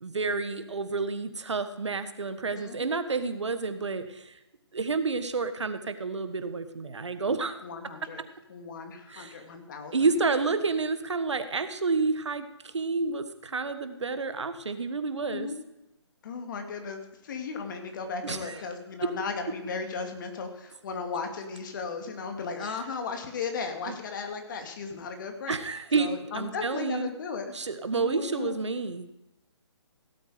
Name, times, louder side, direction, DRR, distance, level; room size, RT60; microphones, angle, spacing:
voice 1, 0.0-4.4 4.7-7.6 9.1-9.4 9.9-15.5 18.2-18.6 22.6-22.8 23.9-24.0 25.5-27.1 27.5-29.2, right 4 dB, 80° right, 10 dB, 1.5 m, -30 dB
voice 2, 2.5-3.0 7.6-8.2 8.5-9.9 15.3-15.5 16.2-25.6 26.0-27.5 27.9-28.6, left 5 dB, 45° left, 5 dB, 2.3 m, -36 dB
16.5 x 8.3 x 5.0 m, 0.91 s
hypercardioid pair, 150°, 15 cm